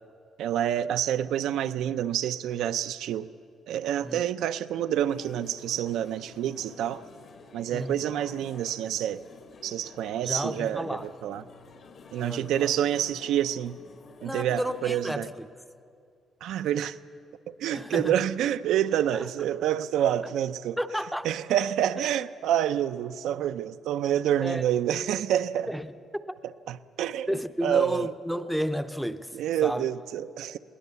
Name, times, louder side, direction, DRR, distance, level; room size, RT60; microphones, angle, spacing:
voice 1, 0.4-3.3 3.7-7.0 7.5-9.2 9.6-11.4 12.1-13.8 14.2-15.3 16.4-17.0 17.5-20.8 21.2-25.7 26.7-28.1 29.3-30.6, right 10 dB, 85° right, 0.5 m, -28 dB
sound 1, 4.9-15.1, left 4 dB, 45° left, 1.0 m, -50 dB
voice 2, 10.2-11.4 12.2-12.7 14.2-15.5 17.7-18.2 20.2-20.3 20.8-21.3 24.4-24.6 25.7-25.9 26.1-26.2 27.3-29.3 29.6-29.9, equal, ahead, 0.5 m, -32 dB
21.0 x 18.0 x 6.9 m
cardioid pair, 155°, 0 cm